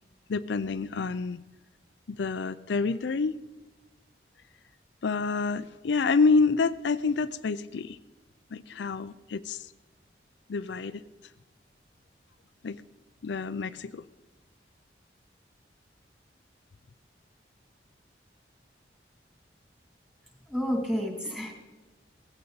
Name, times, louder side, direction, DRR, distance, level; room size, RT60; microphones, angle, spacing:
voice 1, 0.3-1.4 2.1-3.3 5.0-8.0 8.5-9.7 10.5-11.0 12.6-12.8 13.2-14.0, left 4 dB, 75° left, 13 dB, 0.4 m, -28 dB
voice 2, 20.5-21.5, equal, 5° right, 0 dB, 2.6 m, -30 dB
18.0 x 15.0 x 4.0 m, 1.1 s
head